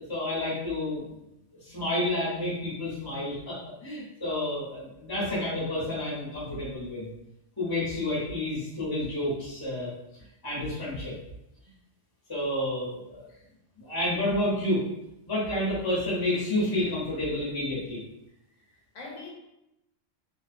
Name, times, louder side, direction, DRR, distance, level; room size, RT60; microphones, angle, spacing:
voice 1, 0.1-1.0 1.6-7.1 7.6-9.9 10.4-11.1 12.3-13.3 13.8-14.8 15.3-18.0, left 1 dB, 20° left, -6 dB, 0.8 m, -30 dB
voice 2, 18.7-19.3, left 3 dB, 80° left, -2 dB, 1.0 m, -44 dB
2.5 x 2.2 x 2.5 m, 0.88 s
omnidirectional pair, 1.3 m